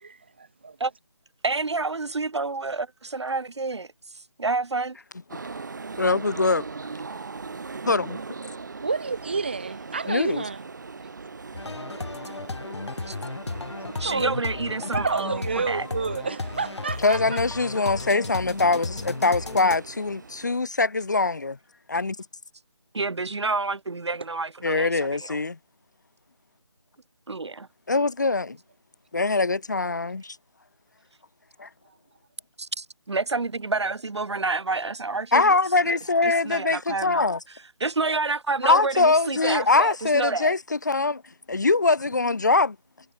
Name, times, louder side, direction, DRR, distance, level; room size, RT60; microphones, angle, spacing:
voice 1, 0.0-0.8 8.6-10.6 14.0-14.4 14.9-17.2, right 4 dB, 20° right, 0.9 m, -30 dB
voice 2, 1.4-3.9 4.4-5.0 13.1-13.2 14.0-15.9 22.9-24.9 27.3-27.7 32.6-35.4 35.9-36.0 36.4-37.3 37.8-40.5, right 3 dB, 65° right, 1.1 m, -28 dB
sound 1, 5.3-20.6, right 4 dB, 40° right, 5.1 m, -40 dB
voice 3, 6.0-6.7 7.8-8.2 10.1-10.4 17.0-21.6 21.9-22.3 24.6-25.6 27.9-28.6 29.1-30.4 31.6-31.7 35.3-37.4 38.6-42.8, left 3 dB, 35° left, 0.8 m, -23 dB
sound 2, 11.5-19.8, left 3 dB, 65° left, 2.8 m, -34 dB
figure-of-eight pair, 175°, 16 cm